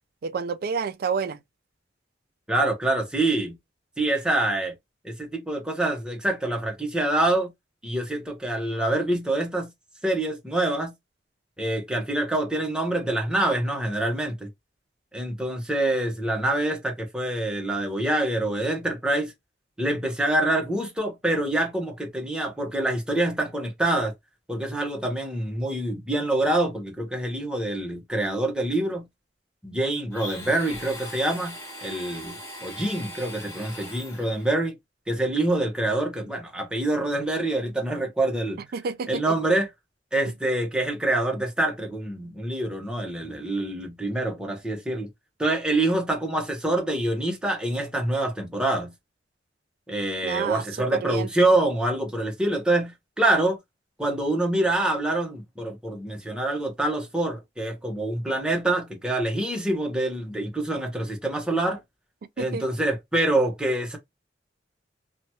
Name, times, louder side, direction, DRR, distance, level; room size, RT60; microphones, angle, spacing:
voice 1, 0.2-1.4 38.7-39.4 50.2-51.3 62.4-62.6, right 5 dB, 55° right, 0.4 m, -29 dB
voice 2, 2.5-3.5 4.0-4.7 5.0-7.5 7.8-9.7 10.0-10.9 11.6-14.5 15.1-19.3 19.8-24.1 24.5-29.0 29.6-31.6 31.8-34.7 35.1-38.6 39.1-39.7 40.1-45.1 45.4-48.9 49.9-53.6 54.0-61.8 62.4-64.0, right 1 dB, 5° right, 0.8 m, -26 dB
Domestic sounds home sounds, 30.1-34.5, left 1 dB, 15° left, 1.1 m, -40 dB
2.8 x 2.2 x 2.8 m
head